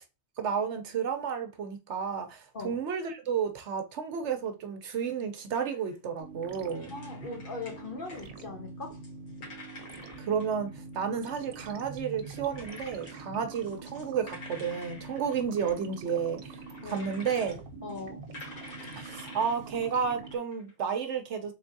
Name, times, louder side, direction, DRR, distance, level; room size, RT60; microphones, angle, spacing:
voice 1, 0.4-6.9 10.2-17.6 19.0-21.5, right 7 dB, 65° right, 0.9 m, -32 dB
sound 1, 5.5-6.0 6.7-8.3 8.7-11.3 12.2-13.2 13.5-15.8 16.5-17.6 17.9-20.8, left 2 dB, 85° left, 1.9 m, -49 dB
sound 2, 6.2-20.4, right 3 dB, 90° right, 1.1 m, -45 dB
voice 2, 6.9-9.0 16.8-17.1 17.8-18.2 18.8-18.9, left 3 dB, 45° left, 1.0 m, -40 dB
3.8 x 3.4 x 2.6 m
omnidirectional pair, 1.4 m